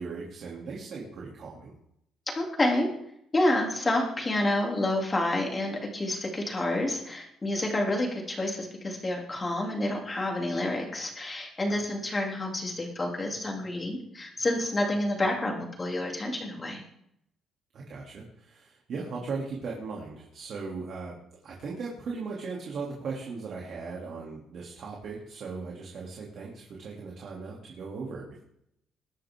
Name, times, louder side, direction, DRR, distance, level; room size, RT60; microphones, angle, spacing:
voice 1, 0.0-1.7 11.6-11.9 17.7-21.2 21.4-28.4, right 4 dB, 50° right, -3 dB, 3.1 m, -38 dB
voice 2, 2.4-2.9 3.3-16.8, left 1 dB, 20° left, 0 dB, 3.2 m, -29 dB
21.0 x 11.5 x 3.9 m, 0.76 s
cardioid pair, 145°, 0 cm